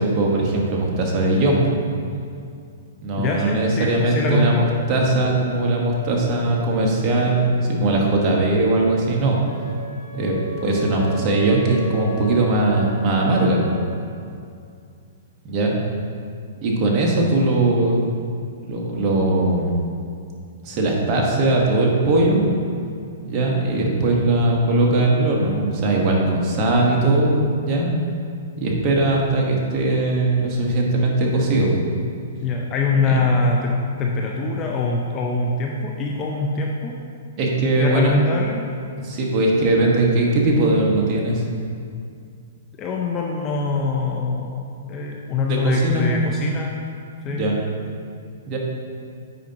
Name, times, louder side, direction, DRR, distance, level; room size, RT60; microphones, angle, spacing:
voice 1, 0.0-1.8 3.0-9.4 10.1-13.6 15.4-15.7 16.6-18.1 18.7-19.8 20.6-22.4 23.2-27.9 28.6-31.8 33.1-33.2 37.4-38.1 39.0-41.4 45.5-46.4 47.3-47.6 48.5-48.6, right 2 dB, 35° right, -2 dB, 1.3 m, -20 dB
voice 2, 3.2-4.7 32.4-37.0 37.8-38.7 42.8-46.7 47.2-47.5, left 3 dB, 30° left, 0 dB, 0.5 m, -23 dB
Wind instrument woodwind instrument, 9.4-13.9, right 2 dB, 45° left, 1.2 m, -35 dB
9.1 x 5.0 x 2.9 m, 2.4 s
hypercardioid pair, 140°, 0 cm